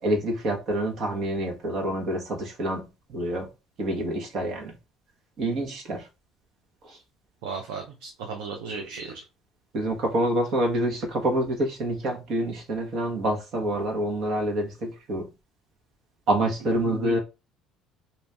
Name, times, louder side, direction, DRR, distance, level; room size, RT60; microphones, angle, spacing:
voice 1, 0.0-3.5 3.8-4.7 5.4-6.0 6.9-7.0 9.7-15.3 16.3-17.2, right 1 dB, 55° right, 1.4 m, -27 dB
voice 2, 7.4-9.2 16.8-17.2, right 5 dB, 80° right, 0.7 m, -35 dB
2.8 x 2.7 x 3.5 m
supercardioid pair, 75°, 0 cm